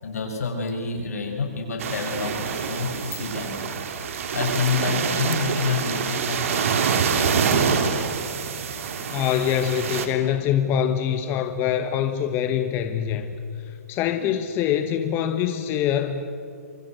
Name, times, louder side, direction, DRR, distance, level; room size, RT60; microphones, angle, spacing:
voice 1, 0.0-3.6 4.0-6.8 7.1-7.8, left 4 dB, 70° left, 2 dB, 7.3 m, -28 dB
sound 1, 1.8-10.1, right 6 dB, 55° right, 3.2 m, -26 dB
voice 2, 9.1-16.3, left 9 dB, 25° left, 8 dB, 1.3 m, -24 dB
28.0 x 24.0 x 8.2 m, 2.4 s
hypercardioid pair, 140°, 8 cm